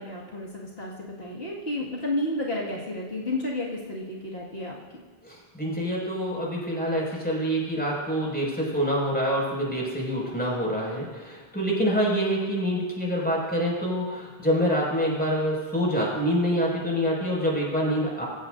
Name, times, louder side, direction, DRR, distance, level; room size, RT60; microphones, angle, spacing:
voice 1, 0.0-4.8, left 1 dB, 70° left, -5 dB, 2.4 m, -31 dB
voice 2, 5.2-18.2, equal, 10° left, -4 dB, 5.9 m, -26 dB
26.5 x 15.5 x 2.7 m, 1.5 s
omnidirectional pair, 1.1 m